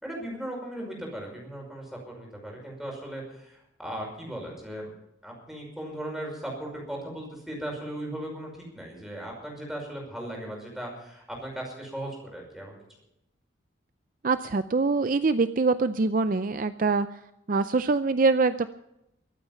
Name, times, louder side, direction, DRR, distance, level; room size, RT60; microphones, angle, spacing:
voice 1, 0.0-4.9 5.2-12.8, right 1 dB, ahead, -1 dB, 5.4 m, -37 dB
voice 2, 14.2-17.2 17.5-18.7, right 3 dB, 45° right, 11 dB, 0.5 m, -24 dB
23.5 x 9.0 x 5.6 m, 0.83 s
head